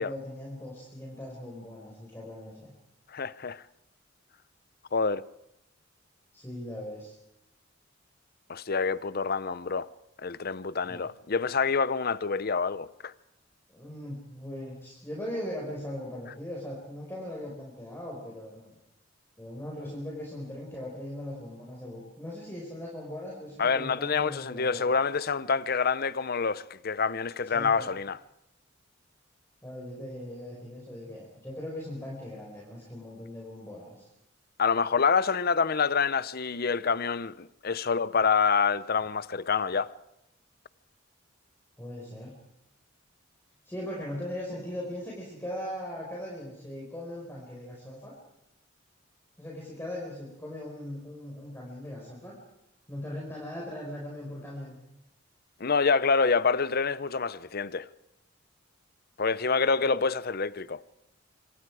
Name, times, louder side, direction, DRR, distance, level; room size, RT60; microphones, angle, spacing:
voice 1, 0.0-2.7 6.3-7.1 10.8-11.1 13.7-18.8 19.4-24.9 27.5-27.9 29.6-34.1 41.8-42.3 43.6-48.1 49.4-52.3 52.9-54.8 59.8-60.0, left 1 dB, 10° left, 5.1 m, -39 dB
voice 2, 3.1-3.6 4.9-5.2 8.5-9.9 10.2-13.1 23.6-28.2 34.6-39.9 55.6-57.9 59.2-60.8, left 5 dB, 50° left, 0.7 m, -27 dB
25.5 x 25.5 x 4.9 m
head